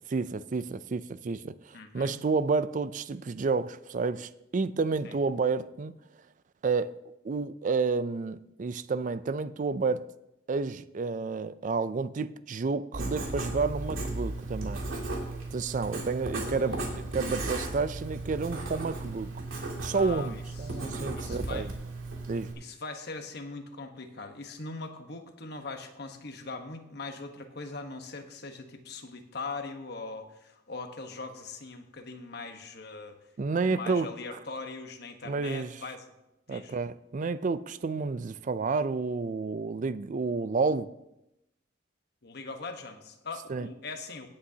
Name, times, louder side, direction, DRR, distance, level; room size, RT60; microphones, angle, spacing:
voice 1, 0.0-5.9 6.6-7.0 7.2-10.1 10.5-14.8 15.5-16.8 17.1-19.3 19.8-21.7 22.3-22.5 33.4-34.1 35.2-35.8 36.5-40.9 43.5-43.7, right 4 dB, 40° right, 0.4 m, -30 dB
voice 2, 1.7-2.2 5.0-5.2 16.5-17.3 19.8-20.9 21.2-21.7 22.6-33.2 33.6-36.1 36.5-36.7 42.2-44.3, left 3 dB, 55° left, 1.1 m, -41 dB
Writing, 12.9-22.5, right 2 dB, 85° right, 2.4 m, -35 dB
17.0 x 8.7 x 2.8 m
head